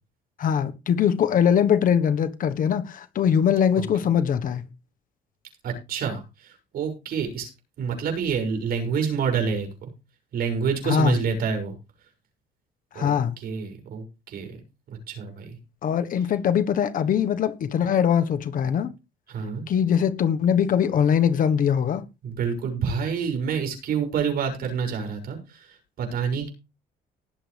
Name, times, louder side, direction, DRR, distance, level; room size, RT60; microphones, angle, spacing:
voice 1, 0.4-4.7 10.8-11.2 12.9-13.3 15.8-18.9 19.7-22.0, left 8 dB, 55° left, 1.4 m, -22 dB
voice 2, 5.6-7.5 7.8-9.7 10.3-11.7 12.9-14.6 15.1-15.6 19.3-19.6 22.2-25.7 26.0-26.5, right 6 dB, 65° right, 6.7 m, -28 dB
19.0 x 7.8 x 3.5 m
cardioid pair, 110°, 17 cm